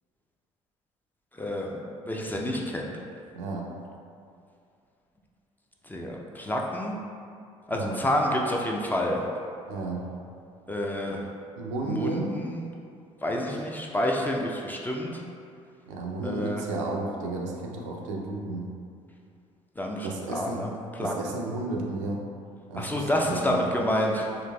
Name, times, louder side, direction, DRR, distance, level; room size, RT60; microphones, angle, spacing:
voice 1, 1.4-1.8 2.1-2.9 5.8-7.0 7.7-9.2 10.7-11.3 11.8-12.7 13.2-15.2 16.2-16.6 19.8-20.7 21.0-21.3 22.7-24.4, left 1 dB, 10° left, -1 dB, 0.4 m, -28 dB
voice 2, 3.3-3.7 7.7-8.0 9.7-10.0 11.1-11.2 11.6-12.4 15.9-18.7 20.0-20.6 21.0-22.2 22.7-23.6, right 2 dB, 80° right, -1 dB, 0.4 m, -32 dB
3.9 x 2.5 x 2.2 m, 2.4 s
hypercardioid pair, 55°, 16 cm